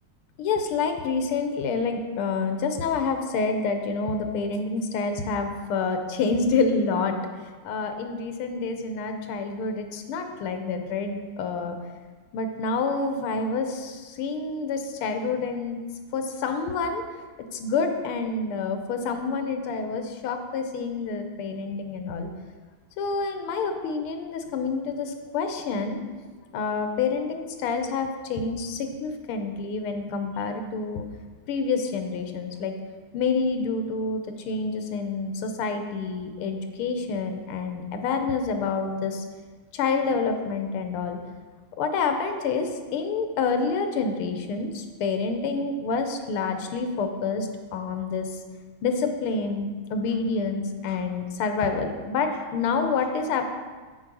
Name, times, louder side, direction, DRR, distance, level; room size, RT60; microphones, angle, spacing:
voice 1, 0.4-7.1 7.6-11.8 12.3-15.8 16.1-17.0 17.5-22.3 23.0-26.0 26.5-31.1 31.5-32.7 33.1-39.2 39.7-41.2 41.8-48.3 48.8-53.5, left 4 dB, 80° left, 6 dB, 1.7 m, -28 dB
7.3 x 4.8 x 6.0 m, 1.4 s
omnidirectional pair, 2.4 m